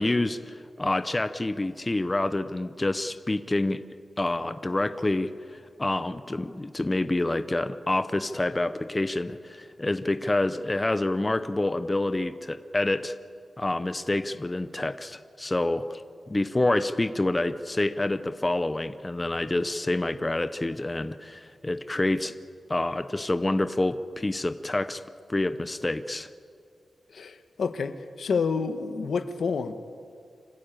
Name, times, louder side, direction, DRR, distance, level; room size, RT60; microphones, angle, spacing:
voice 1, 0.0-3.8 4.2-13.2 13.6-16.0 16.3-22.3 22.7-25.0 25.3-26.3, left 2 dB, 20° left, 11 dB, 0.7 m, -27 dB
voice 2, 27.1-29.7, left 5 dB, 75° left, 10 dB, 1.3 m, -29 dB
26.0 x 14.5 x 8.9 m, 2.2 s
wide cardioid pair, 115°, 0 cm